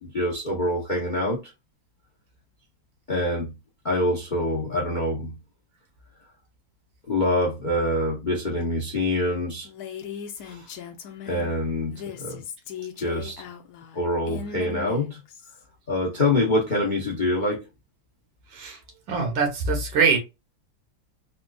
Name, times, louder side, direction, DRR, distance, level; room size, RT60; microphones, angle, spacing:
voice 1, 0.0-1.4 3.1-3.5 3.8-5.4 7.1-9.7 10.4-10.7 11.3-12.4 13.0-13.4 13.9-15.2 15.9-17.6, left 1 dB, 45° left, 0.6 m, -25 dB
Female speech woman speaking, 9.6-11.5 11.9-15.6, left 7 dB, 70° left, 1.0 m, -38 dB
voice 2, 18.5-18.8 19.1-20.2, right 5 dB, 75° right, 1.8 m, -23 dB
4.2 x 2.4 x 2.3 m
omnidirectional pair, 2.1 m